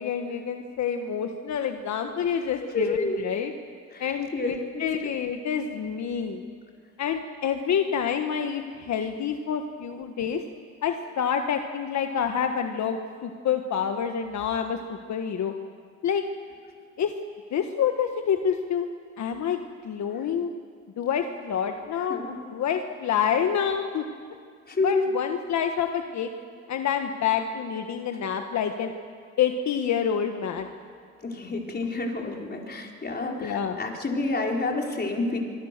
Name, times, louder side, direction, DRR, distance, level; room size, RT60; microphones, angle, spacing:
voice 1, 0.0-3.5 4.0-6.4 7.0-10.4 10.8-15.5 16.0-16.2 17.0-17.1 17.5-18.9 19.2-20.5 21.0-22.2 22.5-24.0 24.8-26.3 26.7-28.9 29.4-30.7 33.4-33.8, left 8 dB, 65° left, 5 dB, 1.5 m, -27 dB
voice 2, 2.7-3.2 3.9-4.0 4.3-4.8 22.1-22.4 24.7-25.1 31.2-35.4, left 3 dB, 35° left, 1 dB, 4.2 m, -28 dB
25.0 x 25.0 x 6.8 m, 2.2 s
cardioid pair, 90°, 30 cm